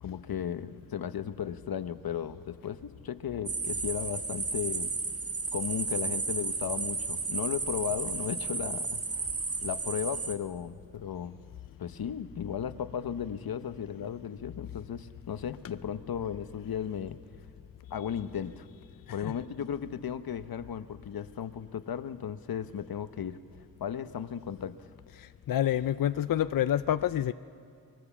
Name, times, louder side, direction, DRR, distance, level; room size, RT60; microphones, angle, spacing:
voice 1, 0.0-4.9 5.5-9.0 9.6-11.4 11.8-17.2 17.9-18.7 19.1-23.4 23.8-24.9, left 8 dB, 85° left, 12 dB, 0.9 m, -35 dB
sound 1, 3.5-10.4, right 4 dB, 40° right, 1.5 m, -33 dB
voice 2, 25.2-27.3, left 11 dB, 70° left, 13 dB, 0.5 m, -28 dB
23.5 x 21.0 x 7.1 m, 2.3 s
wide cardioid pair, 140°, 35 cm